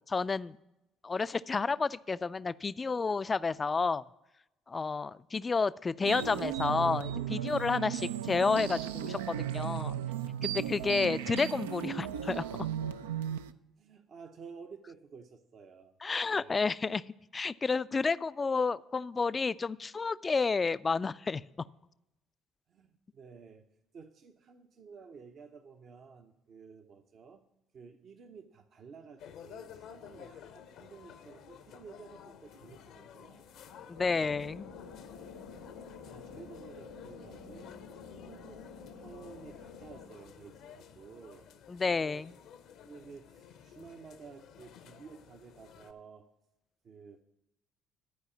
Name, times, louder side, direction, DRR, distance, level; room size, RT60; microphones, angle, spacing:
voice 1, 0.1-0.6 1.0-4.0 4.7-10.0 10.4-12.7 16.0-17.0 17.3-21.4 33.9-34.7 41.7-42.3, left 4 dB, 30° left, 17 dB, 0.3 m, -30 dB
sound 1, 6.0-13.5, right 10 dB, 85° right, 0.3 m, -35 dB
voice 2, 13.8-16.6 22.7-23.6 23.9-27.4 27.7-33.5 36.0-37.7 38.2-38.7 39.0-41.5 41.9-42.3 42.8-46.3 46.8-47.2, right 5 dB, 55° right, 6 dB, 0.7 m, -52 dB
sound 2, 29.2-45.9, left 8 dB, 65° left, 0.7 m, -53 dB
sound 3, 33.9-40.1, left 5 dB, 85° left, 1.1 m, -49 dB
11.5 x 4.8 x 7.0 m, 0.91 s
hypercardioid pair, 55°, 0 cm